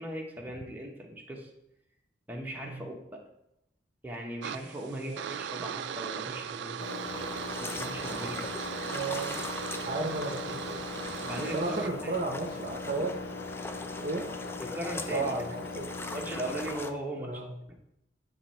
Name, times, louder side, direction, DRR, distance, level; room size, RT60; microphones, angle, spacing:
voice 1, 0.0-1.5 2.3-3.2 4.0-6.9 7.6-8.4 11.2-12.1 14.7-15.4 16.1-17.4, right 1 dB, 10° right, -1 dB, 0.9 m, -38 dB
sound 1, 4.4-11.9, right 8 dB, 80° right, 0.3 m, -38 dB
voice 2, 4.9-5.4 8.9-9.4 9.9-10.8 11.5-13.2 14.0-14.3 15.1-16.2 17.2-17.5, right 3 dB, 50° right, 2 dB, 0.7 m, -34 dB
Engine, 6.8-16.7, left 3 dB, 75° left, 0.5 m, -40 dB
sound 2, 7.0-16.9, left 2 dB, 15° left, 0.3 m, -42 dB
9.0 x 3.1 x 4.3 m, 0.82 s
head